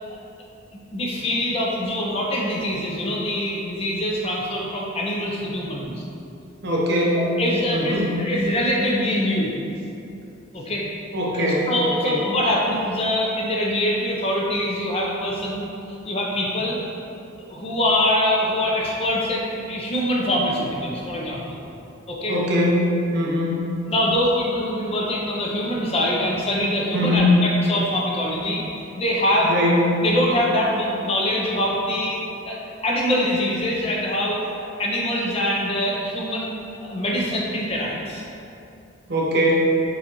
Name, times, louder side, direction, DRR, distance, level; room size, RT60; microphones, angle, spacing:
voice 1, 0.9-5.9 7.2-9.5 10.5-10.9 11.3-15.7 16.0-16.8 17.5-21.6 22.1-22.4 23.9-29.6 30.0-36.5 36.8-38.2, left 1 dB, 30° left, -3 dB, 0.5 m, -24 dB
voice 2, 6.6-7.2 7.7-8.1 11.1-12.2 22.3-23.7 26.9-27.4 29.4-29.8 39.1-39.7, left 1 dB, 50° right, -3 dB, 0.6 m, -21 dB
6.6 x 2.4 x 2.9 m, 2.7 s
head